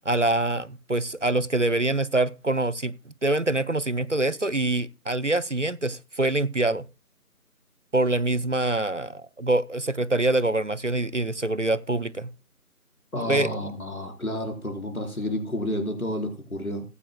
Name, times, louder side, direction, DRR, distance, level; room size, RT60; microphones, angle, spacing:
voice 1, 0.1-6.9 7.9-12.3 13.3-13.5, right 2 dB, 55° right, 0.6 m, -25 dB
voice 2, 13.1-16.8, left 1 dB, 65° left, 4.4 m, -30 dB
15.5 x 15.0 x 2.2 m
figure-of-eight pair, 170°, 46 cm